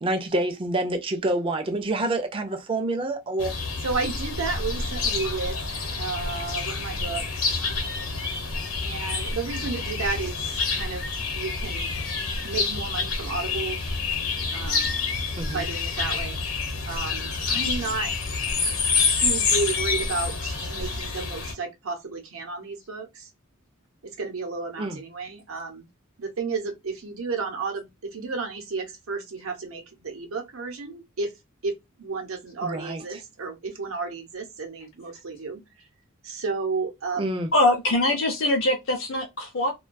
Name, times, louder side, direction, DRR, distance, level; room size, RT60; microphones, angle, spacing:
voice 1, 0.0-3.5 15.4-15.7 24.8-25.0 32.6-33.2 37.2-37.5, right 2 dB, 25° right, 0.3 m, -27 dB
sound 1, 3.4-21.5, left 4 dB, 80° left, 0.8 m, -28 dB
voice 2, 3.8-5.6 6.0-7.4 8.8-11.1 11.3-11.9 12.4-13.8 14.5-15.2 15.5-16.4 16.8-18.1 19.1-23.3 24.2-25.9 26.2-31.3 31.6-35.6 36.2-37.3, right 4 dB, 80° right, 0.7 m, -32 dB
voice 3, 37.5-39.7, left 1 dB, 60° left, 0.5 m, -23 dB
2.2 x 2.2 x 2.5 m
head